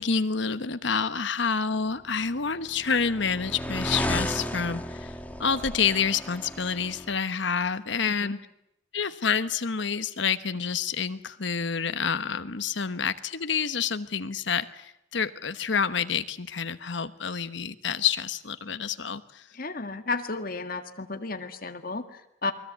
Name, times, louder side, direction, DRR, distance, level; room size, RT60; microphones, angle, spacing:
voice 1, 0.0-8.4 8.9-19.4, left 6 dB, 65° left, 12 dB, 1.1 m, -28 dB
sound 1, 2.2-7.2, left 1 dB, 10° left, 1.4 m, -34 dB
voice 2, 19.5-22.5, left 3 dB, 45° left, 6 dB, 1.8 m, -33 dB
29.0 x 20.5 x 8.1 m, 0.80 s
head